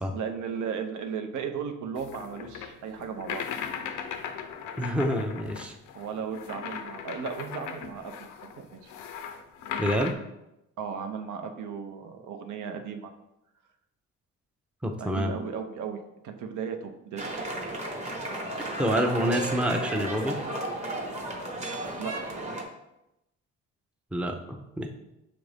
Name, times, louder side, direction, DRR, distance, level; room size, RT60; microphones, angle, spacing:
voice 1, 0.1-3.6 5.9-8.9 10.8-13.1 15.0-16.0 16.2-17.4 22.0-22.2, right 6 dB, 75° right, 5 dB, 0.6 m, -36 dB
sound 1, 1.9-10.1, left 7 dB, 90° left, 0.5 m, -38 dB
voice 2, 4.8-5.7 9.8-10.1 14.8-15.3 18.8-20.4 24.1-24.3 24.8-24.9, equal, 5° right, 4 dB, 0.4 m, -27 dB
sound 2, 17.2-22.6, right 1 dB, 25° right, 1.0 m, -34 dB
6.2 x 2.5 x 3.3 m, 0.89 s
cardioid pair, 90°, 30 cm